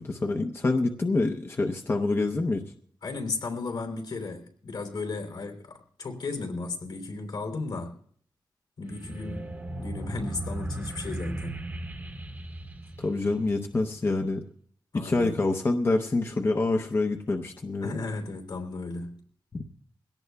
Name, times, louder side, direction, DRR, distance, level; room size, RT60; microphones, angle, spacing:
voice 1, 0.0-2.6 13.0-14.4 14.9-17.9 19.5-19.6, left 2 dB, 30° left, 4 dB, 0.7 m, -26 dB
voice 2, 3.0-8.0 8.8-11.6 14.9-15.3 17.8-19.2, left 3 dB, 75° left, 3 dB, 3.1 m, -35 dB
sound 1, 8.9-13.8, right 1 dB, 25° right, 1.0 m, -37 dB
22.5 x 17.5 x 2.3 m, 0.62 s
wide cardioid pair, 145°, 8 cm